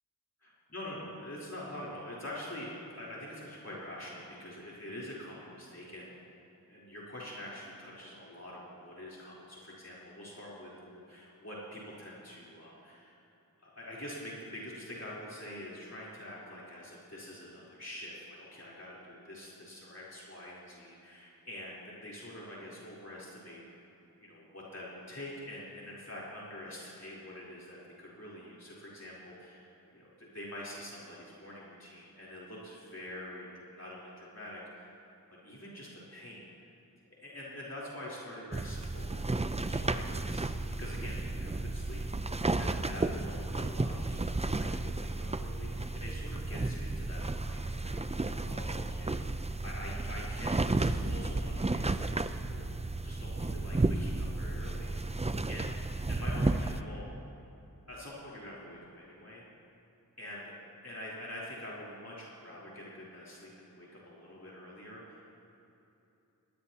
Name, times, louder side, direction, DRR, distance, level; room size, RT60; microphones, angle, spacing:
voice 1, 0.4-6.2 6.7-13.2 13.6-23.8 24.2-35.0 35.3-36.5 37.2-42.3 42.6-52.7 53.0-55.7 56.1-57.0 57.9-59.4 60.2-60.5 60.8-65.2, left 1 dB, 45° left, -7 dB, 4.0 m, -46 dB
sound 1, 38.5-56.8, right 2 dB, 20° right, 0.5 m, -33 dB
22.5 x 18.5 x 3.0 m, 2.9 s
wide cardioid pair, 70°, 36 cm